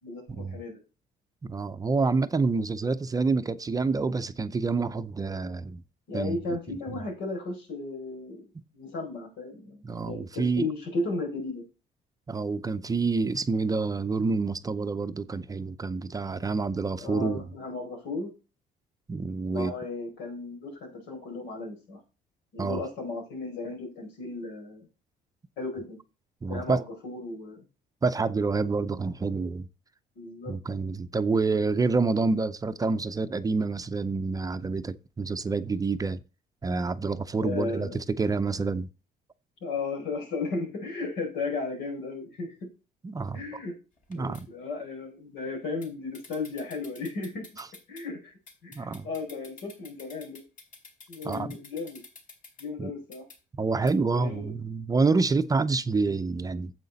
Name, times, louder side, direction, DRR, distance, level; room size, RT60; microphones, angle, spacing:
voice 1, 0.0-0.8 6.1-11.6 17.0-18.3 19.5-22.0 22.5-24.9 25.6-26.0 26.5-27.6 30.1-30.6 37.4-38.0 39.6-42.7 43.3-43.7 44.1-47.5 47.9-50.4 51.1-52.0 52.6-53.3 54.1-54.5, left 3 dB, 85° left, 4.6 m, -35 dB
voice 2, 1.5-5.8 6.1-6.4 9.8-10.7 12.3-17.4 19.1-19.7 22.6-22.8 26.4-26.8 28.0-29.7 30.5-36.2 36.6-38.9 43.0-43.4 44.1-44.4 48.8-49.1 51.2-51.6 52.8-52.9 53.6-56.7, right 4 dB, 20° right, 0.6 m, -27 dB
sound 1, 44.0-44.4 45.8-45.9 46.1-48.0 48.5-52.7 53.1-53.4 53.9-54.0, left 3 dB, 50° left, 3.5 m, -50 dB
9.3 x 7.7 x 4.0 m
cardioid pair, 110°, 17 cm